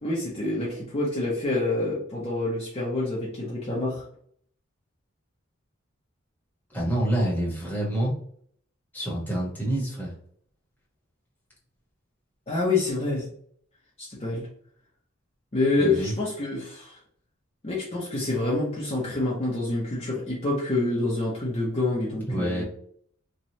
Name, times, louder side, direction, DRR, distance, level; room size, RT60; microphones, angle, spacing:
voice 1, 0.0-4.0 12.5-13.2 14.0-14.5 15.5-17.0 17.6-22.6, left 2 dB, 30° left, -6 dB, 0.7 m, -27 dB
voice 2, 6.7-8.2 8.9-10.1 15.8-16.1 22.2-22.6, right 1 dB, 10° left, -6 dB, 1.0 m, -27 dB
3.1 x 2.3 x 2.6 m, 0.62 s
head